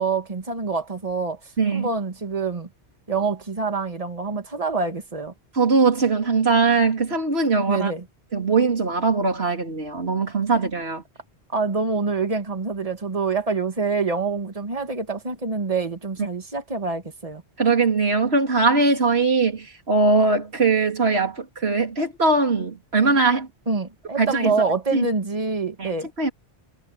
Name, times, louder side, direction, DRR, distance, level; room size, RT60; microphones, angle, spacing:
voice 1, 0.0-1.4 1.7-2.7 3.1-5.3 7.7-8.0 10.5-10.6 11.5-17.4 23.7-26.1, right 4 dB, 35° right, 1.9 m, -26 dB
voice 2, 1.6-1.9 5.5-7.9 8.3-11.0 17.6-23.5 24.2-25.1 25.8-26.3, right 4 dB, 70° right, 3.4 m, -21 dB
omnidirectional pair, 1.1 m